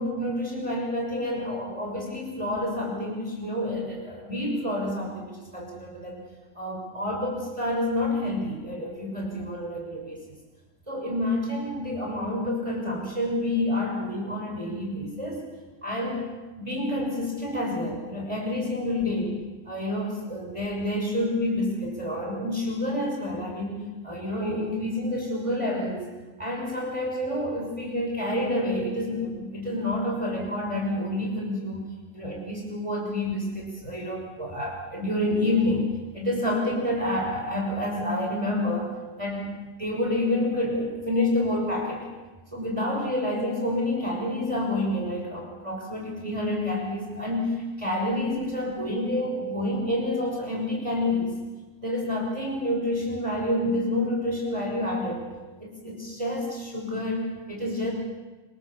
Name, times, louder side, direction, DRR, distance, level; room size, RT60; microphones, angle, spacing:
voice 1, 0.0-6.2 6.5-10.2 10.9-15.4 15.8-16.3 16.6-19.3 19.6-26.1 26.4-35.9 36.1-38.9 39.2-39.5 39.8-42.1 42.5-51.3 51.8-55.3 55.6-57.9, left 1 dB, 20° right, -1 dB, 6.0 m, -28 dB
26.5 x 26.0 x 7.3 m, 1.2 s
omnidirectional pair, 1.7 m